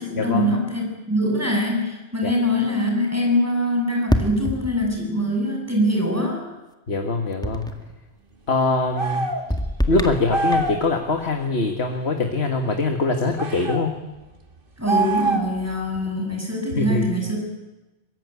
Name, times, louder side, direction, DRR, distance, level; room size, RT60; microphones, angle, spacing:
voice 1, 0.0-6.4 14.8-17.4, equal, 15° right, 1 dB, 7.3 m, -23 dB
sound 1, 4.1-5.2 7.4-8.0 9.5-10.8, equal, 5° left, 1.9 m, -26 dB
voice 2, 6.9-7.7 8.5-9.3 9.9-14.0 16.7-17.1, left 3 dB, 80° left, 4 dB, 2.1 m, -23 dB
sound 2, 8.9-9.5 10.3-10.8 13.4-13.8 14.8-15.6, right 2 dB, 55° right, 2.0 m, -24 dB
23.5 x 22.5 x 9.6 m, 1.1 s
omnidirectional pair, 1.1 m